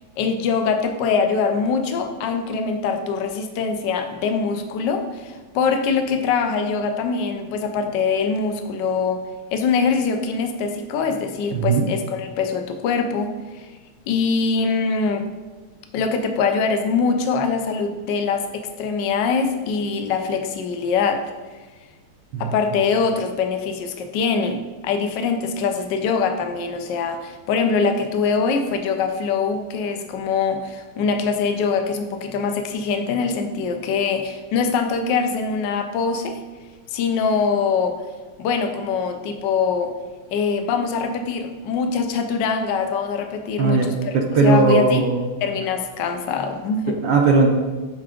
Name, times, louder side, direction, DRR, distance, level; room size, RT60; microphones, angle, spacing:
voice 1, 0.2-9.2 9.5-13.7 14.1-15.2 15.9-21.2 22.4-24.6 24.8-36.4 36.9-38.0 38.4-39.9 40.3-44.1 44.4-45.0 45.4-47.0, left 5 dB, 65° left, 6 dB, 1.2 m, -23 dB
voice 2, 11.5-11.9 22.3-22.5 43.6-43.9 44.1-45.3 47.0-47.5, right 4 dB, 65° right, 0 dB, 1.4 m, -17 dB
8.6 x 3.5 x 5.0 m, 1.3 s
omnidirectional pair, 2.4 m